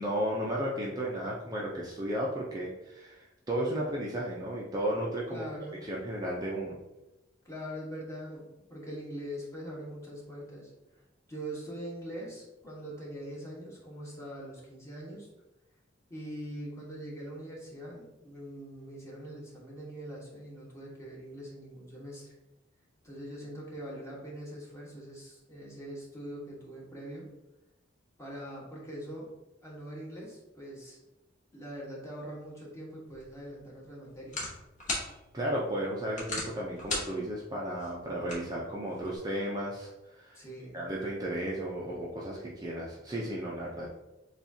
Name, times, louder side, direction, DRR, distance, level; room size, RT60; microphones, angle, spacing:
voice 1, 0.0-5.4 5.8-6.8 35.3-40.4 40.7-43.9, right 1 dB, 20° right, -4 dB, 0.5 m, -34 dB
voice 2, 5.3-5.8 7.4-10.7 11.3-15.3 16.1-22.3 23.0-27.3 28.2-29.3 29.6-31.0 31.5-34.5 40.3-40.8, equal, 15° left, -5 dB, 1.2 m, -42 dB
sound 1, 33.1-39.2, left 2 dB, 40° left, 1.2 m, -40 dB
7.0 x 2.4 x 2.7 m, 0.98 s
head